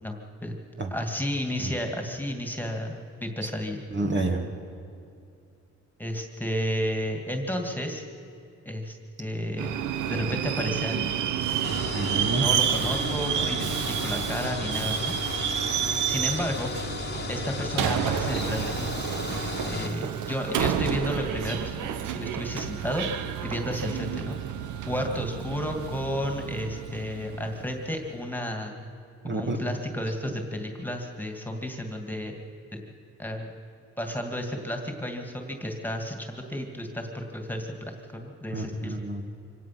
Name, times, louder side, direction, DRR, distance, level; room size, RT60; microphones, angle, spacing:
voice 1, 0.0-0.6 0.9-3.8 6.0-8.0 8.7-9.7 10.1-11.1 12.3-15.1 16.1-16.7 17.3-24.4 24.9-28.8 29.2-32.3 32.7-32.8 33.2-33.5 34.0-39.0, equal, 5° left, 3 dB, 2.3 m, -32 dB
voice 2, 3.9-4.4 11.9-12.5 29.2-29.6 38.5-39.2, right 2 dB, 40° right, 3 dB, 2.1 m, -28 dB
Subway metro underground, 9.6-28.0, right 9 dB, 80° right, 1.0 m, -30 dB
sound 1, 11.6-19.9, left 5 dB, 35° left, 1.5 m, -35 dB
25.0 x 18.0 x 6.0 m, 2.5 s
cardioid pair, 90°, 30 cm